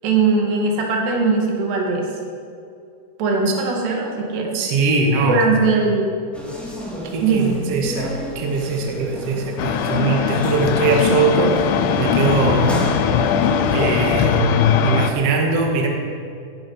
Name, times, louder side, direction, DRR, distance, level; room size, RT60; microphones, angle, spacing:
voice 1, 0.0-2.1 3.2-4.6 5.2-6.1 7.2-7.6 10.2-10.4, right 4 dB, 80° right, 0 dB, 4.2 m, -20 dB
voice 2, 4.5-5.4 7.1-12.8 13.7-15.9, right 2 dB, 45° right, 1 dB, 2.2 m, -21 dB
sound 1, 6.3-14.1, equal, ahead, 1.9 m, -31 dB
sound 2, 9.6-15.1, left 7 dB, 80° left, 2.8 m, -20 dB
18.0 x 10.5 x 5.8 m, 2.4 s
omnidirectional pair, 4.8 m